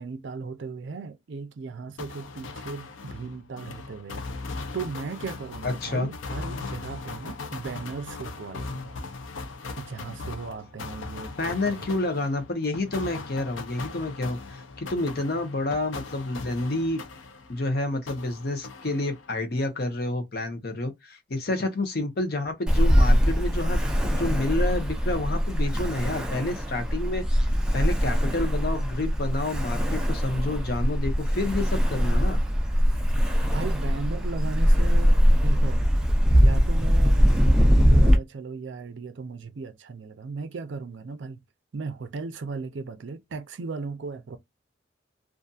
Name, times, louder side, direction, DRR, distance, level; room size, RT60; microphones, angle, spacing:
voice 1, 0.0-9.0 9.8-11.9 33.4-35.8 36.3-41.4 41.7-44.4, right 4 dB, 70° right, 0.4 m, -37 dB
sound 1, 2.0-17.7 18.1-19.4, left 3 dB, 80° left, 0.5 m, -39 dB
voice 2, 5.6-6.1 11.4-17.0 17.5-27.2 27.7-32.4, left 2 dB, 55° left, 0.8 m, -29 dB
Ocean, 22.7-38.2, equal, 5° right, 0.5 m, -22 dB
2.6 x 2.4 x 2.3 m
head